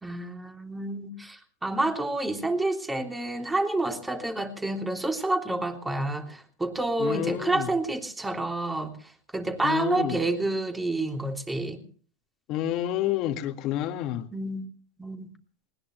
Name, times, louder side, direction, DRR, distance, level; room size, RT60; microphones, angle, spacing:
voice 1, 0.0-11.8 14.3-14.7 15.0-15.3, right 2 dB, 10° right, 5 dB, 3.3 m, -29 dB
voice 2, 7.0-7.7 9.6-10.2 12.5-14.3, left 12 dB, 50° left, 7 dB, 2.0 m, -29 dB
20.5 x 20.0 x 3.3 m, 0.42 s
hypercardioid pair, 110°, 0 cm